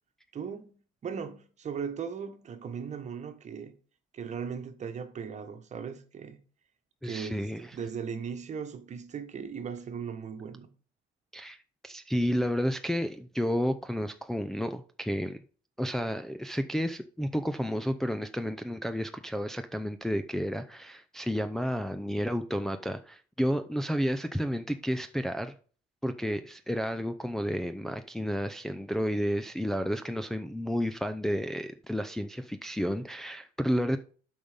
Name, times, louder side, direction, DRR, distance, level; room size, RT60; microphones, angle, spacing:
voice 1, 0.3-3.7 4.1-6.4 7.0-10.7, right 6 dB, 45° right, 1.4 m, -38 dB
voice 2, 7.0-7.7 11.3-11.6 11.8-15.4 15.8-25.5 26.0-34.0, equal, ahead, 0.5 m, -31 dB
8.6 x 5.5 x 5.2 m
cardioid pair, 110°, 17 cm